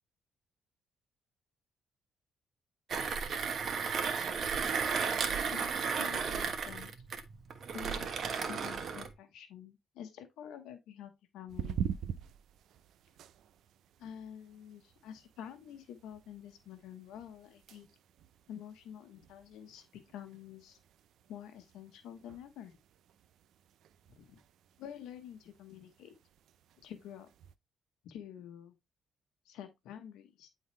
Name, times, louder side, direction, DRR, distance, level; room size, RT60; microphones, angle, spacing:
Mechanisms, 2.9-9.1, right 6 dB, 55° right, 1.3 m, -34 dB
voice 1, 5.5-6.9 7.7-8.1 8.5-11.8 14.0-17.9 18.5-20.8 21.3-22.8 24.1-24.4 24.8-26.1 26.8-27.3 28.0-28.7 29.4-30.5, left 9 dB, 90° left, 1.1 m, -48 dB
sound 1, 11.5-27.6, right 9 dB, 75° right, 0.5 m, -46 dB
9.3 x 4.0 x 3.2 m
cardioid pair, 90°, 0 cm